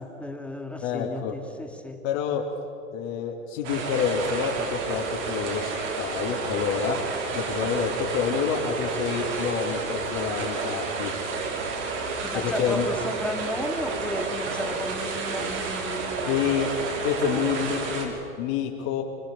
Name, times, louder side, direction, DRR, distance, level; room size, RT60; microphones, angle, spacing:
voice 1, 0.0-2.0 12.2-16.4 17.2-17.5, left 1 dB, 5° left, 3 dB, 2.5 m, -34 dB
voice 2, 0.8-1.3 2.0-2.4 2.9-7.0 7.3-11.1 12.5-12.9 16.3-16.7 17.0-19.0, left 8 dB, 60° left, 0 dB, 3.3 m, -28 dB
sound 1, 3.6-18.0, right 4 dB, 70° right, 5.9 m, -30 dB
25.0 x 24.0 x 7.1 m, 2.6 s
hypercardioid pair, 90°, 39 cm